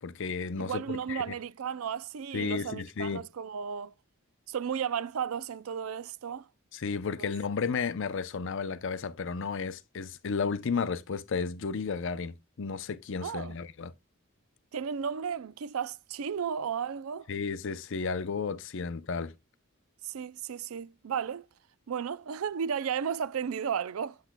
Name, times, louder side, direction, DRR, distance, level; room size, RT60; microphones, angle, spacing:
voice 1, 0.0-1.2 2.3-3.2 6.7-13.9 17.3-19.3, left 5 dB, 60° left, 0.5 m, -33 dB
voice 2, 0.6-3.9 4.5-6.5 13.2-13.6 14.7-17.3 20.0-21.5 21.9-24.2, right 7 dB, 75° right, 0.4 m, -34 dB
8.0 x 7.4 x 2.2 m
head